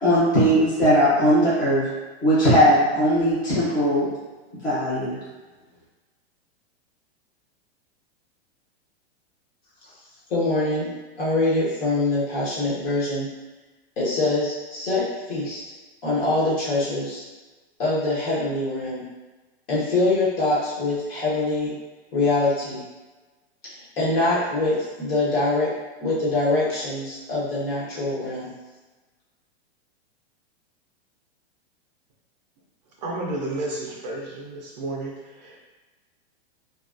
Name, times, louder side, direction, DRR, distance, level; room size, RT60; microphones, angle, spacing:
voice 1, 0.0-1.9 2.2-4.1 4.6-5.2, equal, 10° left, -11 dB, 0.6 m, -19 dB
voice 2, 10.3-13.3 14.0-15.6 16.0-17.2 17.8-19.0 19.7-21.7 22.1-22.8 23.6-25.7 26.0-28.5, left 2 dB, 65° left, -8 dB, 1.2 m, -24 dB
voice 3, 33.0-35.7, right 2 dB, 40° right, -3 dB, 0.4 m, -32 dB
2.3 x 2.2 x 2.4 m, 1.2 s
supercardioid pair, 165°, 32 cm